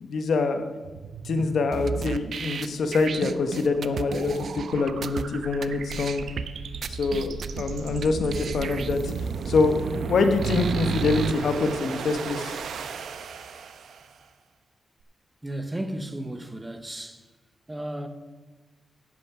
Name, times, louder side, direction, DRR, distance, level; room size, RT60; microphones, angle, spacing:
voice 1, 0.0-0.7 1.2-6.3 6.9-12.6, left 3 dB, 60° left, 1.1 m, -25 dB
sound 1, 0.8-14.2, right 5 dB, 90° right, 0.9 m, -36 dB
sound 2, 1.7-5.2 5.6-5.7 5.9-6.4 6.8-7.6 8.0-8.1 8.3-11.3, right 6 dB, 55° right, 0.4 m, -32 dB
voice 2, 15.4-17.2 17.7-18.1, right 1 dB, 10° right, 0.8 m, -34 dB
10.5 x 8.6 x 5.6 m
wide cardioid pair, 160°, 0 cm